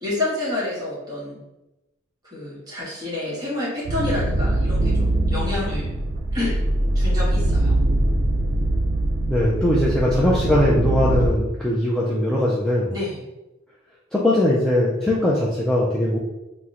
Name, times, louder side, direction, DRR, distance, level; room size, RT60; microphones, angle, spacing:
voice 1, 0.0-1.4 2.3-5.9 6.3-6.6 6.9-7.8 12.9-13.2, left 2 dB, 20° right, -8 dB, 1.1 m, -28 dB
sound 1, 3.9-11.3, right 1 dB, 60° right, 0.6 m, -22 dB
voice 2, 9.3-12.9 14.1-16.2, left 1 dB, 5° left, -6 dB, 0.3 m, -20 dB
2.9 x 2.0 x 3.6 m, 0.99 s
head